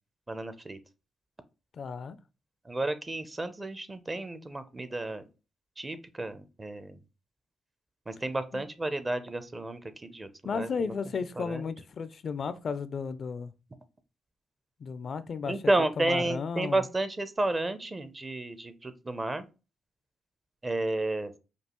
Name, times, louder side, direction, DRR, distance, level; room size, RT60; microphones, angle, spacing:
voice 1, 0.3-0.8 2.6-5.2 5.8-7.0 8.1-10.9 11.4-11.7 15.5-19.5 20.6-21.4, right 2 dB, 25° right, 0.5 m, -32 dB
voice 2, 1.7-2.2 8.5-8.6 10.4-13.5 14.8-15.6 16.0-16.8, left 5 dB, 55° left, 0.4 m, -34 dB
5.2 x 2.3 x 3.0 m
cardioid pair, 90°, 0 cm